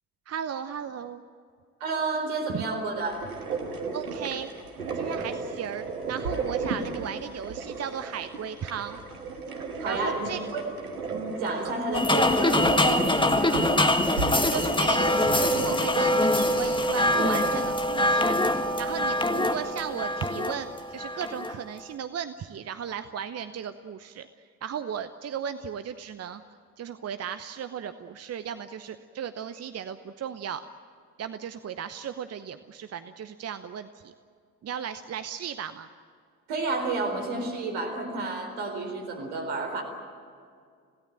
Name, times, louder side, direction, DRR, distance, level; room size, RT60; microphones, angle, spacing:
voice 1, 0.3-1.2 2.5-2.6 3.9-4.5 4.9-9.0 9.8-10.4 11.6-11.7 12.9-13.1 14.5-18.4 18.8-24.3 24.6-26.4 26.8-30.6 31.2-34.1 34.6-35.9, right 8 dB, 35° right, 11 dB, 0.9 m, -36 dB
voice 2, 1.8-3.2 9.8-10.7 11.1-14.0 36.5-39.8, right 3 dB, 65° right, 4 dB, 4.2 m, -31 dB
sound 1, 3.1-17.6, right 4 dB, 80° right, 1.7 m, -34 dB
sound 2, 11.9-21.5, left 1 dB, 10° left, 1.6 m, -24 dB
27.0 x 17.5 x 8.9 m, 2.2 s
figure-of-eight pair, 45°, 44 cm